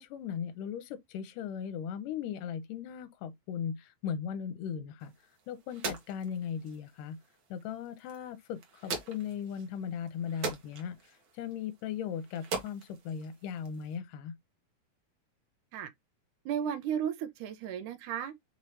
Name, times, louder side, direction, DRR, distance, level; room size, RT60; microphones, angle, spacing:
voice 1, 0.0-5.1 5.5-7.2 7.5-14.4, left 8 dB, 85° left, 2.1 m, -38 dB
sound 1, 5.0-14.0, right 4 dB, 60° right, 1.3 m, -43 dB
voice 2, 16.5-18.4, right 9 dB, 80° right, 2.0 m, -34 dB
5.5 x 3.1 x 2.8 m
omnidirectional pair, 3.8 m